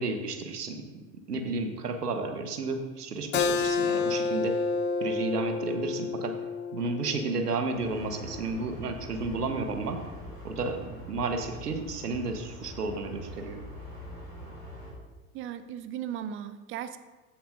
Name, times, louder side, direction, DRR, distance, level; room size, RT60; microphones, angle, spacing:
voice 1, 0.0-4.6 5.0-6.4 6.7-10.0 10.4-13.6, right 3 dB, 80° right, 6 dB, 1.2 m, -32 dB
Keyboard (musical), 3.3-8.5, left 4 dB, 25° left, 0.5 m, -30 dB
sound 1, 7.7-14.9, equal, 90° left, 2.8 m, -43 dB
voice 2, 15.3-17.0, right 10 dB, 30° right, 10 dB, 0.5 m, -36 dB
15.0 x 6.9 x 2.6 m, 1.2 s
figure-of-eight pair, 85°, 46 cm